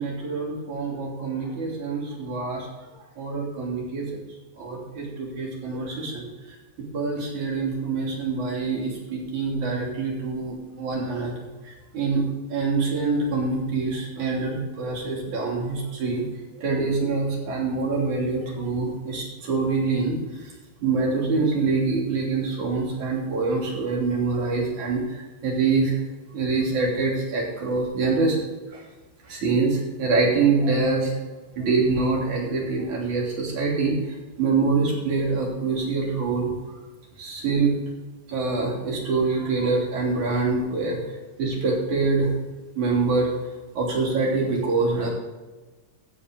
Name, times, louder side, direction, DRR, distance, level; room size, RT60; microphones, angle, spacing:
voice 1, 0.0-2.9 3.2-4.2 4.6-6.2 6.8-11.3 11.6-12.2 12.5-16.2 16.6-20.2 20.8-26.0 26.3-28.8 29.3-31.2 31.6-34.0 34.4-36.5 37.2-37.7 38.3-41.0 41.4-42.3 42.8-43.3 43.8-45.1, right 4 dB, 70° right, -2 dB, 4.5 m, -25 dB
13.5 x 8.5 x 3.9 m, 1.2 s
omnidirectional pair, 3.6 m